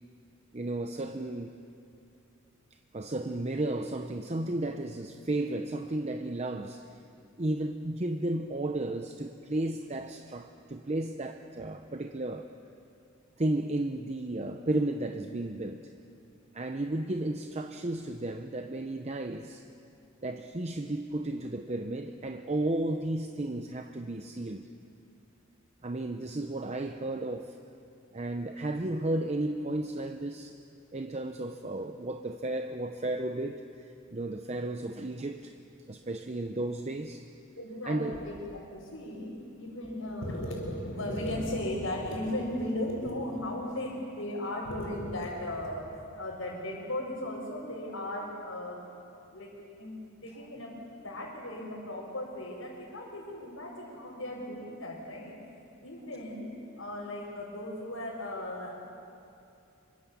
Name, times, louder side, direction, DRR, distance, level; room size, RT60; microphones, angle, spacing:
voice 1, 0.5-1.5 2.9-7.0 7.4-12.5 13.4-15.9 16.5-19.7 20.2-24.7 25.8-27.6 28.1-30.6 30.9-35.5 35.9-37.3 37.9-38.1, right 2 dB, 30° right, 6 dB, 0.7 m, -33 dB
voice 2, 37.6-48.8 49.3-49.5 49.8-55.4 55.8-56.5 56.8-58.8, left 1 dB, 80° left, -7 dB, 5.2 m, -36 dB
26.0 x 24.5 x 7.1 m, 2.7 s
head